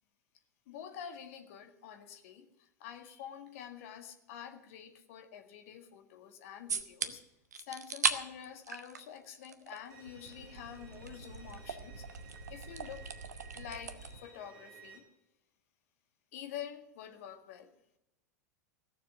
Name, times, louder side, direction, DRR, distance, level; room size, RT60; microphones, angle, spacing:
voice 1, 0.7-7.2 7.6-12.0 12.5-13.1 13.5-15.1 16.3-17.7, left 9 dB, 55° left, 7 dB, 1.6 m, -47 dB
sound 1, 6.7-7.1 7.5-8.1 8.4-9.8 10.1-14.2, right 5 dB, 75° right, 1.0 m, -38 dB
Bowed string instrument, 9.9-15.0, right 5 dB, 40° right, 4.2 m, -56 dB
16.0 x 7.3 x 8.3 m, 0.86 s
figure-of-eight pair, 90°, 9 cm